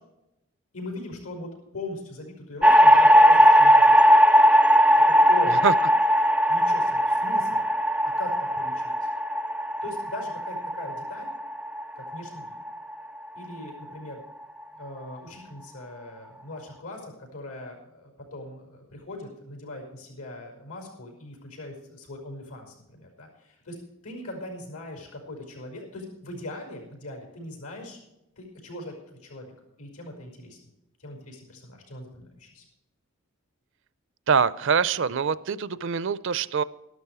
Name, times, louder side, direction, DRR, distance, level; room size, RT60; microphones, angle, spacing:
voice 1, 0.7-3.9 5.1-5.6 6.5-7.7 8.0-9.1 9.8-11.3 12.0-12.6 13.4-14.2 14.7-23.8 24.0-28.0 28.4-30.6 31.0-32.6, left 2 dB, 90° left, 3 dB, 5.3 m, -40 dB
sound 1, 2.6-12.9, equal, 5° right, 0.4 m, -18 dB
voice 2, 34.3-36.6, right 6 dB, 60° right, 18 dB, 0.5 m, -24 dB
12.5 x 12.5 x 4.8 m, 0.90 s
head